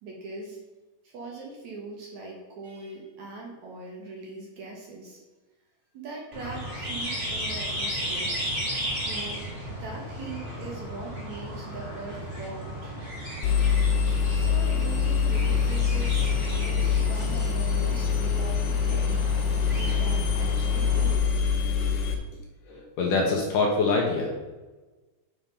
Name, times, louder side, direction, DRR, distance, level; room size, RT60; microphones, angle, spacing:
voice 1, 0.0-0.6 1.0-5.2 5.9-8.4 9.0-13.0 14.3-16.3 16.6-19.2 19.7-21.3, right 3 dB, 60° right, -1 dB, 2.0 m, -41 dB
sound 1, 6.3-21.2, equal, 15° right, 1.8 m, -35 dB
Engine, 13.4-22.1, left 6 dB, 85° left, 3.1 m, -24 dB
voice 2, 22.7-24.3, left 3 dB, 70° left, 0 dB, 2.1 m, -25 dB
9.3 x 4.4 x 5.2 m, 1.2 s
omnidirectional pair, 4.7 m